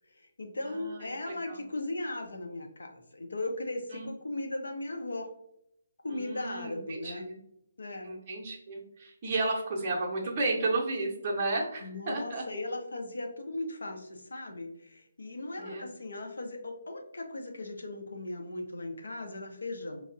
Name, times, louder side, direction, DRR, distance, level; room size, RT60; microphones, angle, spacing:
voice 1, 0.1-5.3 6.0-7.3 7.8-8.1 11.8-20.0, left 2 dB, 70° left, 3 dB, 0.6 m, -37 dB
voice 2, 0.6-1.1 1.4-1.6 3.9-4.1 6.1-7.4 8.0-12.4 15.6-15.9, right 2 dB, 35° right, -1 dB, 0.6 m, -33 dB
4.2 x 2.0 x 2.5 m, 0.74 s
figure-of-eight pair, 140°, 0 cm